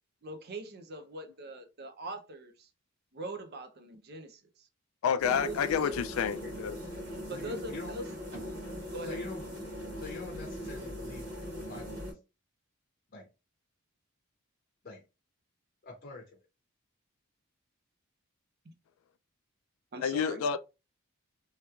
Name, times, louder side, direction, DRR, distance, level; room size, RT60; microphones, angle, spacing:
voice 1, 0.2-2.7 3.1-4.7 5.2-5.6 5.9-6.1 7.3-8.1 8.9-9.3 18.6-18.7 19.9-20.5, right 1 dB, 50° right, 0.6 m, -42 dB
voice 2, 5.0-6.7 20.0-20.6, left 7 dB, 75° left, 0.3 m, -29 dB
sound 1, 5.2-12.1, equal, 75° right, 1.8 m, -40 dB
voice 3, 6.4-6.8 7.3-7.9 9.0-9.4 10.0-11.3 11.6-12.1 13.1-13.3 14.8-15.0 15.8-16.4, left 3 dB, 40° left, 0.6 m, -44 dB
3.2 x 2.9 x 2.3 m
head